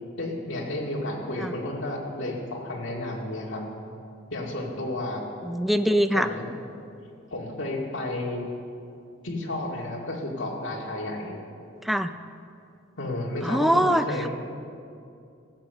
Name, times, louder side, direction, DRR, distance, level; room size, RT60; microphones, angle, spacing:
voice 1, 0.2-3.6 4.3-5.2 6.1-6.5 7.3-8.5 9.2-11.3 13.0-14.3, left 1 dB, 60° left, -2 dB, 2.1 m, -32 dB
voice 2, 5.5-6.3 11.9-12.1 13.4-14.0, equal, ahead, 9 dB, 0.3 m, -22 dB
14.5 x 7.9 x 6.7 m, 2.5 s
head